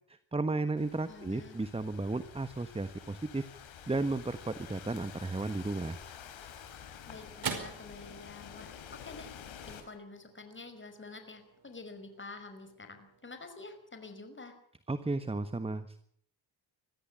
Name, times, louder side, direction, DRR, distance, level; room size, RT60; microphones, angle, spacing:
voice 1, 0.1-3.5 3.9-6.0 14.9-16.0, right 2 dB, 15° right, 12 dB, 1.3 m, -34 dB
Thunderstorm / Rain, 0.8-9.8, left 8 dB, 90° left, 4.6 m, -49 dB
voice 2, 1.1-1.6 7.1-9.3 9.7-14.5, left 3 dB, 25° left, 7 dB, 5.4 m, -48 dB
sound 1, 6.1-14.7, right 5 dB, 50° right, 5.0 m, -47 dB
23.0 x 15.0 x 8.7 m, 0.64 s
cardioid pair, 90°, 45 cm